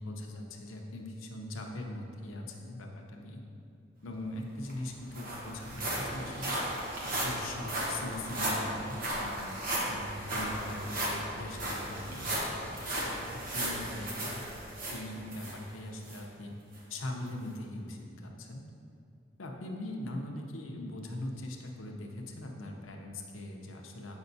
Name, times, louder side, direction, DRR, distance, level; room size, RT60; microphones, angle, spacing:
voice 1, 0.0-3.4 4.0-6.6 7.0-9.6 9.9-14.4 14.9-16.5 16.9-18.6 19.4-24.2, left 1 dB, 90° left, 1 dB, 0.7 m, -41 dB
sound 1, 4.3-4.4 4.7-15.6 16.1-16.2 16.7-16.8, right 1 dB, 45° right, 1.1 m, -35 dB
8.0 x 5.2 x 2.7 m, 2.5 s
head